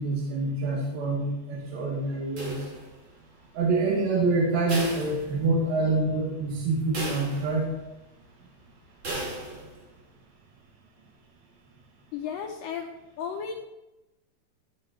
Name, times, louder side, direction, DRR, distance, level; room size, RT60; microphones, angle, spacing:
voice 1, 0.0-2.7 3.6-7.7, right 3 dB, 65° right, -3 dB, 3.5 m, -26 dB
sound 1, 2.4-3.2 4.7-5.8 6.2-6.3 6.9-7.8 9.0-9.8, right 1 dB, 35° right, 3.0 m, -36 dB
voice 2, 12.1-12.9 13.2-13.5, left 7 dB, 90° left, 2 dB, 1.9 m, -33 dB
15.5 x 6.3 x 4.5 m, 0.97 s
omnidirectional pair, 4.8 m